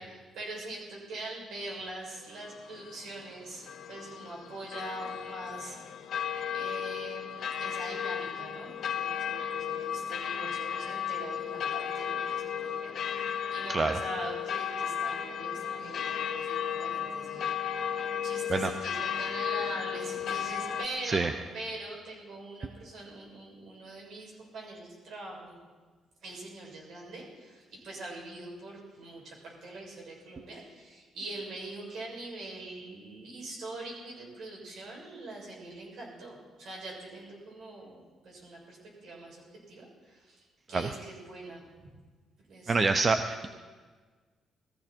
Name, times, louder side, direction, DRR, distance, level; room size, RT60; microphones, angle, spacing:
voice 1, 0.0-5.8 6.5-17.5 17.8-25.6 26.2-41.6 42.5-42.8, right 2 dB, 70° right, -2 dB, 6.9 m, -43 dB
sound 1, 2.3-20.9, left 8 dB, 60° left, 1.2 m, -34 dB
voice 2, 42.7-43.5, right 4 dB, 35° right, 8 dB, 0.7 m, -26 dB
20.0 x 15.0 x 4.5 m, 1.4 s
cardioid pair, 90°, 0 cm